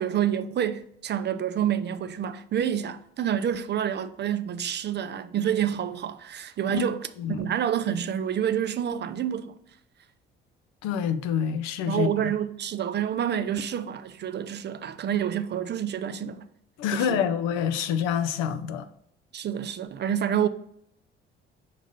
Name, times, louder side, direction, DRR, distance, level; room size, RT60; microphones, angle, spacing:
voice 1, 0.0-9.6 11.9-16.5 16.9-17.3 19.3-20.5, right 9 dB, 35° right, 0.5 m, -28 dB
voice 2, 10.8-12.3 16.8-18.9, left 8 dB, 65° left, 0.6 m, -27 dB
5.5 x 3.7 x 5.1 m
figure-of-eight pair, 50°, 29 cm